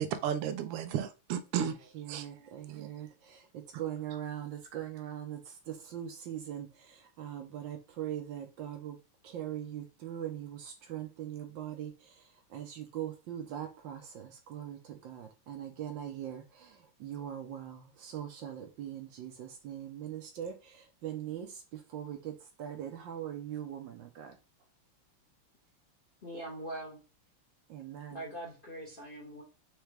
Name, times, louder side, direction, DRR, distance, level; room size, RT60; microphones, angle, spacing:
voice 1, 0.0-2.9 3.7-3.8 4.1-4.2, right 9 dB, 85° right, 1.6 m, -35 dB
voice 2, 2.1-3.4 3.8-5.4 5.7-6.7 7.2-9.0 9.2-11.9 12.5-16.7 17.0-20.5 21.0-21.5 21.9-24.3 27.7-28.2, right 10 dB, 70° right, 1.2 m, -41 dB
voice 3, 26.2-27.0 28.1-29.4, right 1 dB, 35° left, 0.8 m, -42 dB
4.7 x 3.3 x 3.3 m
omnidirectional pair, 2.4 m